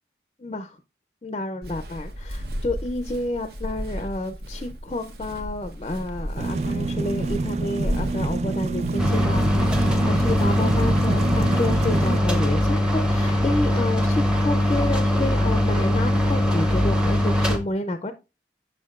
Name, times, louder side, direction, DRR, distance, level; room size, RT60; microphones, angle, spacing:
voice 1, 0.4-0.8 1.2-18.1, left 2 dB, 30° left, 9 dB, 0.4 m, -30 dB
Walk footsteps, 1.6-11.3, equal, 60° right, 0.9 m, -35 dB
sound 1, 6.4-12.2, right 3 dB, 40° right, 0.4 m, -27 dB
sound 2, 9.0-17.6, left 1 dB, 5° right, 0.7 m, -21 dB
6.5 x 6.4 x 2.4 m, 0.27 s
head